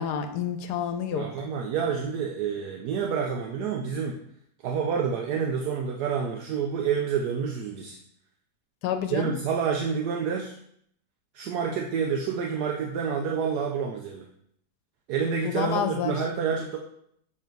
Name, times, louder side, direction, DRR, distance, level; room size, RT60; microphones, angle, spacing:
voice 1, 0.0-1.3 8.8-9.3 15.4-16.1, left 8 dB, 75° left, 8 dB, 1.2 m, -29 dB
voice 2, 1.1-4.2 4.6-8.0 9.1-10.6 11.3-14.3 15.1-16.8, right 6 dB, 70° right, 2 dB, 1.1 m, -28 dB
7.3 x 3.5 x 4.5 m, 0.70 s
omnidirectional pair, 1.8 m